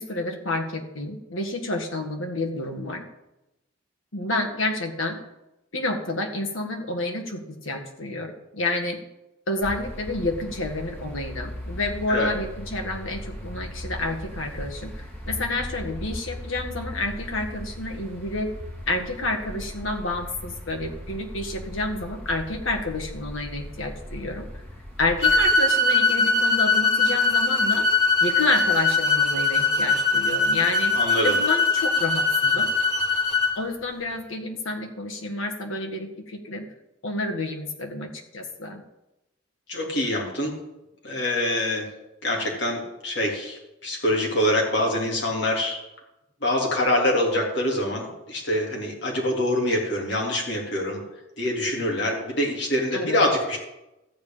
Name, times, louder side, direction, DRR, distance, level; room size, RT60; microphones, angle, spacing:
voice 1, 0.0-3.1 4.1-5.2 5.7-9.0 9.5-18.5 18.9-24.5 25.0-27.9 28.2-31.0 31.2-32.7 33.6-36.7 37.0-38.8 52.9-53.2, left 2 dB, 85° left, 3 dB, 1.8 m, -29 dB
sound 1, 9.6-25.5, equal, 10° left, 2.8 m, -38 dB
sound 2, 25.2-33.5, left 3 dB, 30° left, 2.8 m, -21 dB
voice 2, 30.9-31.4 39.7-40.5 41.0-41.8 42.2-45.8 46.4-51.0 51.4-53.6, left 1 dB, 60° left, -1 dB, 3.3 m, -25 dB
14.0 x 5.1 x 8.9 m, 0.95 s
head